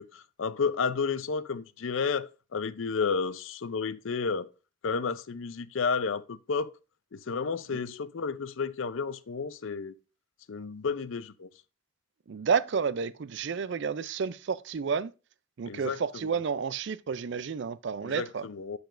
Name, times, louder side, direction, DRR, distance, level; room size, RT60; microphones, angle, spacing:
voice 1, 0.0-4.5 4.8-6.7 7.1-9.9 10.5-11.5 15.7-16.2 18.0-18.8, left 5 dB, 70° left, 0.5 m, -31 dB
voice 2, 12.3-15.1 15.6-18.5, right 6 dB, 55° right, 0.4 m, -30 dB
7.9 x 6.8 x 2.5 m
head